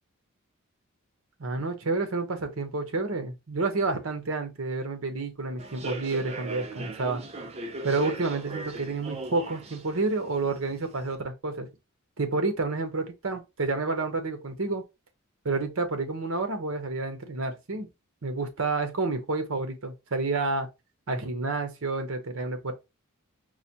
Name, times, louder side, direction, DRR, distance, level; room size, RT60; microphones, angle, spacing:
voice 1, 1.4-7.2 7.8-11.7 12.2-14.8 15.4-17.9 18.2-20.7 21.1-22.7, right 3 dB, 65° right, 0.9 m, -29 dB
Human voice / Subway metro underground, 5.6-11.1, right 2 dB, 30° right, 0.4 m, -39 dB
4.8 x 2.2 x 2.8 m
head